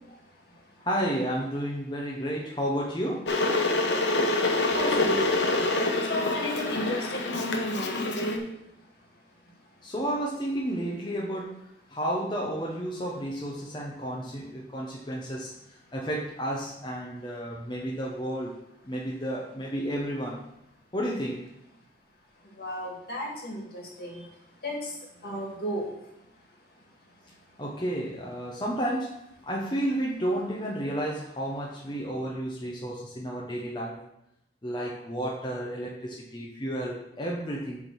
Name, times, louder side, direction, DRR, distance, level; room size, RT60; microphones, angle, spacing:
voice 1, 0.8-3.3 9.8-11.5 11.9-15.5 15.9-18.5 18.8-20.4 20.9-21.4 27.6-29.2 29.4-34.0 34.6-37.8, right 1 dB, 25° left, -3 dB, 0.9 m, -31 dB
Water / Boiling, 3.3-8.4, left 2 dB, 80° left, 1.0 m, -26 dB
voice 2, 4.4-8.4 22.4-24.3 24.6-26.1, equal, 60° left, -1 dB, 2.1 m, -34 dB
8.1 x 3.7 x 6.3 m, 0.82 s
head